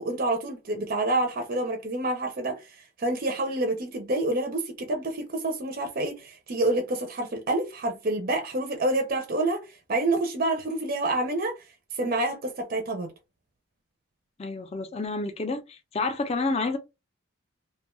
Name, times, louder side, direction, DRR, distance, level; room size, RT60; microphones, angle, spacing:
voice 1, 0.0-9.6 9.9-11.6 11.9-13.1, right 2 dB, 40° right, 0.5 m, -28 dB
voice 2, 14.4-16.8, left 3 dB, 30° left, 0.4 m, -29 dB
2.6 x 2.2 x 2.9 m
head